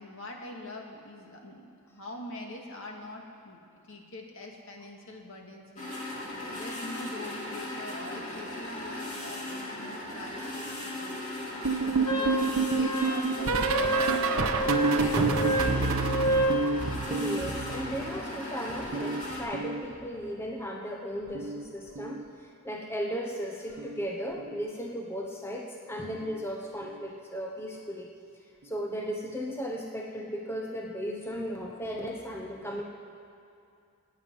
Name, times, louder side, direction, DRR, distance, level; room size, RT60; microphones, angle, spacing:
voice 1, 0.0-1.6 1.9-3.6 3.9-6.0 6.5-10.4 10.8-11.2 11.8-16.4, left 2 dB, 60° left, 0 dB, 2.2 m, -44 dB
sound 1, 5.8-19.4, left 1 dB, 35° left, 2.8 m, -37 dB
sound 2, 11.6-18.4 18.7-20.3 21.3-21.6 21.9-22.2 23.8-24.0 24.4-24.6 26.2-26.3, right 4 dB, 70° right, 1.0 m, -29 dB
Wind instrument woodwind instrument, 12.0-16.6, right 1 dB, 85° left, 2.7 m, -29 dB
voice 2, 17.1-28.1 28.6-32.8, equal, 10° left, 0 dB, 0.9 m, -36 dB
27.5 x 9.1 x 5.5 m, 2.5 s
head